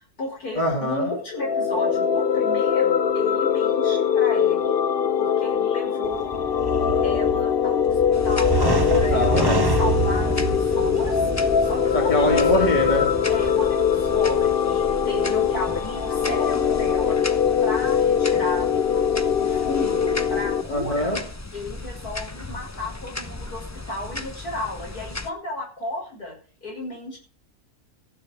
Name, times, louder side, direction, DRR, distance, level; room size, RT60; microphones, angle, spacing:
voice 1, 0.0-4.8 5.2-6.3 7.0-8.6 8.9-11.3 11.6-12.4 13.3-17.2 17.6-18.7 19.4-21.2 21.5-27.2, left 2 dB, 80° left, 6.3 m, -33 dB
voice 2, 0.6-1.1 8.6-9.7 11.9-13.2 20.7-21.3, left 1 dB, 30° left, 2.6 m, -24 dB
sound 1, 1.3-20.6, left 7 dB, 50° left, 0.8 m, -22 dB
sound 2, 6.0-14.6, right 2 dB, 15° right, 1.3 m, -28 dB
sound 3, 8.1-25.3, left 2 dB, 15° left, 0.8 m, -36 dB
15.0 x 6.7 x 7.5 m
omnidirectional pair, 1.6 m